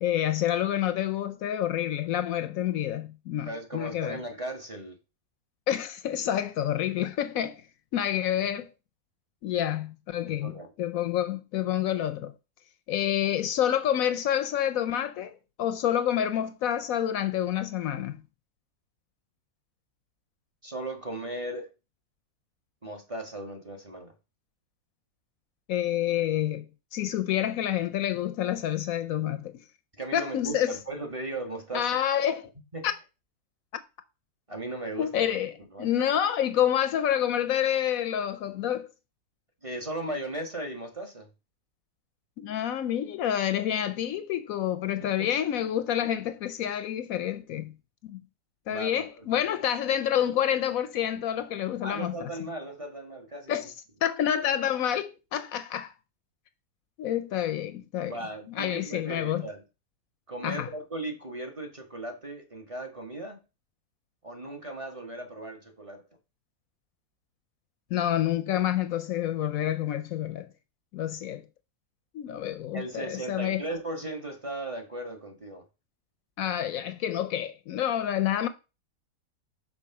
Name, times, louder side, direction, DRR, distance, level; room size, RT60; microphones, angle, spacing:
voice 1, 0.0-4.2 5.7-7.6 7.9-8.7 9.4-12.3 12.9-18.2 25.7-26.7 26.9-29.6 30.1-30.8 31.7-32.5 32.8-32.9 35.0-38.9 42.4-47.7 48.0-48.2 48.7-52.3 53.5-53.7 54.0-55.9 57.0-58.2 58.5-59.5 60.4-60.7 67.9-70.5 70.9-71.5 72.1-73.6 76.4-78.5, left 10 dB, 75° left, 1.0 m, -28 dB
voice 2, 3.4-5.0 10.3-10.7 20.6-21.7 22.8-24.1 30.0-32.0 32.7-32.9 34.5-35.2 35.7-35.9 39.6-41.3 45.2-45.3 48.7-49.1 49.3-49.4 51.8-53.6 58.0-59.6 60.3-63.4 64.2-66.0 72.7-75.6, right 2 dB, 25° right, 1.1 m, -37 dB
5.9 x 4.0 x 5.7 m
omnidirectional pair, 1.6 m